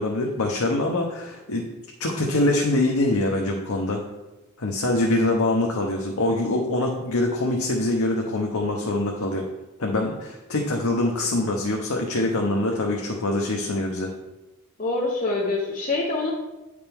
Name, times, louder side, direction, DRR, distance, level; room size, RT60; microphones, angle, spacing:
voice 1, 0.0-1.6 2.0-4.0 4.6-9.5 9.8-14.1, left 2 dB, 85° left, 0 dB, 0.9 m, -24 dB
voice 2, 14.8-16.3, left 2 dB, 40° left, -4 dB, 0.9 m, -25 dB
9.0 x 5.1 x 3.5 m, 1.1 s
head